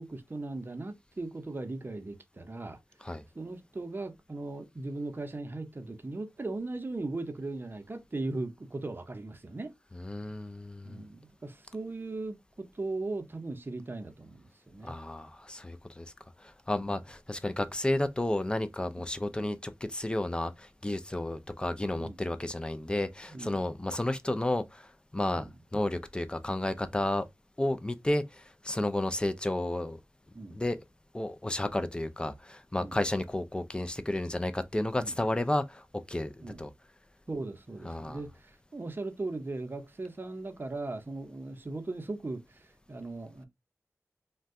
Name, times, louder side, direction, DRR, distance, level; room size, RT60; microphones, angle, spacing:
voice 1, 0.0-2.8 3.3-9.7 10.8-14.9 16.8-17.0 21.9-22.2 23.3-23.6 25.4-25.5 30.3-30.6 32.8-32.9 34.9-35.1 36.4-36.6 37.3-43.4, right 2 dB, 35° right, 0.7 m, -38 dB
voice 2, 9.9-11.0 14.8-16.1 16.4-27.3 27.6-30.0 30.5-30.8 31.1-36.7 37.8-38.2, left 1 dB, 15° left, 0.5 m, -32 dB
2.5 x 2.2 x 3.5 m
cardioid pair, 40°, 6 cm